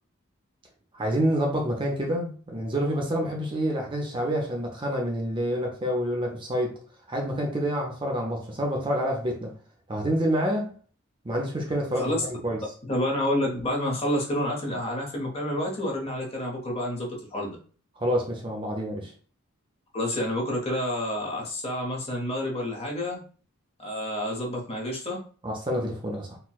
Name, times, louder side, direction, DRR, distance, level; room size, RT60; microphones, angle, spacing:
voice 1, 0.9-6.8 7.1-9.5 9.9-10.7 11.2-12.1 12.4-12.6 18.0-19.1 25.4-26.4, equal, 25° right, 0.5 m, -27 dB
voice 2, 11.9-12.2 12.9-17.6 19.9-23.2 23.8-25.2, left 1 dB, 30° left, 0.8 m, -29 dB
4.2 x 2.1 x 2.3 m
head